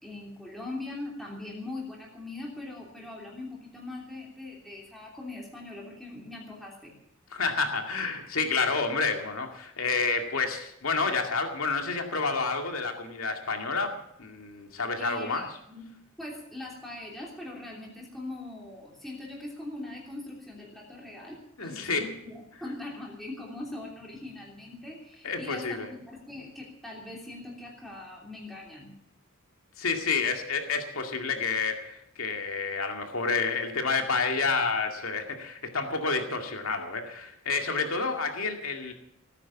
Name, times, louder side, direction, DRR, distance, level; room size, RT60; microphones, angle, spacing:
voice 1, 0.0-6.9 15.0-15.4 15.7-29.0, left 2 dB, ahead, -3 dB, 3.1 m, -41 dB
voice 2, 7.3-15.5 21.6-22.1 25.2-25.9 29.8-38.9, left 4 dB, 80° left, 4 dB, 2.2 m, -29 dB
17.5 x 9.8 x 7.1 m, 0.77 s
head